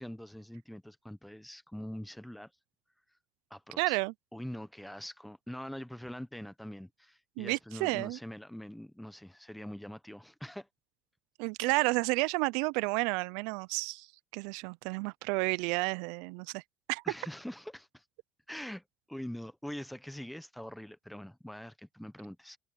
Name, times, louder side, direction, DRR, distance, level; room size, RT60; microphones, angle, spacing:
voice 1, 0.0-2.5 3.5-4.0 4.3-10.7 17.0-18.0 18.5-22.6, equal, ahead, 0.9 m, -44 dB
voice 2, 3.8-4.1 7.4-8.2 11.4-14.1 14.3-16.6 16.9-17.0, right 27 dB, 85° right, 0.3 m, -31 dB
cardioid pair, 140°, 0 cm